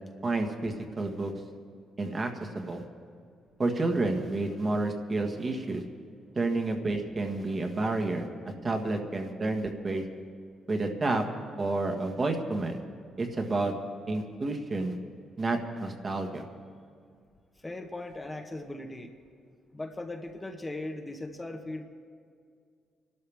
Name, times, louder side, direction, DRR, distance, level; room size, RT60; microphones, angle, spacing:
voice 1, 0.2-1.3 2.0-2.3 2.5-2.8 3.6-5.8 6.3-8.3 8.6-10.0 10.7-11.2 11.6-12.8 13.2-13.7 14.1-15.0 15.4-16.4, right 2 dB, 35° right, 3 dB, 1.6 m, -30 dB
voice 2, 17.6-19.1 19.7-21.8, left 2 dB, 20° left, 4 dB, 1.1 m, -38 dB
26.0 x 12.5 x 3.5 m, 2.2 s
cardioid pair, 90°, 0 cm